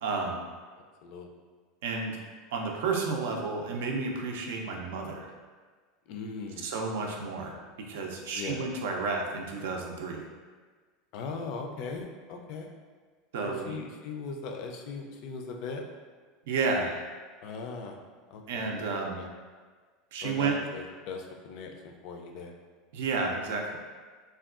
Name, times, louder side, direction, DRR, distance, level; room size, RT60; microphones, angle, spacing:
voice 1, 0.0-0.4 1.8-2.2 2.5-5.3 6.6-7.6 7.9-10.2 13.3-13.8 16.5-17.0 18.5-19.2 20.1-20.6 22.9-23.8, right 4 dB, 85° right, 1 dB, 0.4 m, -31 dB
voice 2, 0.8-1.3 6.1-6.7 8.3-8.7 11.1-12.7 13.4-15.8 17.4-18.0 18.3-18.7 19.2-19.3 20.2-22.5, left 4 dB, 55° left, 3 dB, 0.3 m, -39 dB
3.4 x 2.2 x 2.4 m, 1.5 s
supercardioid pair, 145°, 0 cm